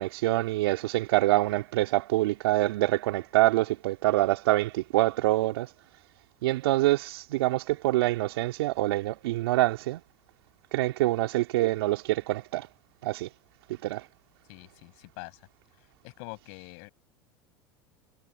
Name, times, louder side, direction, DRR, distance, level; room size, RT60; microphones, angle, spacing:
voice 1, 0.0-5.7 6.4-10.0 10.7-12.7 13.0-13.3 13.7-14.1, right 17 dB, 70° right, 2.6 m, -25 dB
voice 2, 14.5-15.4 16.0-16.9, left 37 dB, 65° left, 6.7 m, -44 dB
hypercardioid pair, 80°, 13 cm